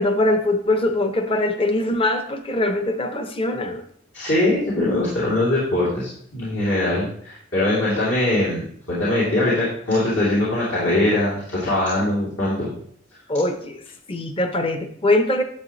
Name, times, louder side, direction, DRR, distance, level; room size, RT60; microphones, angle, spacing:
voice 1, 0.0-3.8 13.3-13.8 14.1-15.4, left 1 dB, 30° left, 8 dB, 0.7 m, -22 dB
voice 2, 4.1-12.7, left 1 dB, 70° left, -9 dB, 3.0 m, -22 dB
10.5 x 7.0 x 3.1 m, 0.63 s
head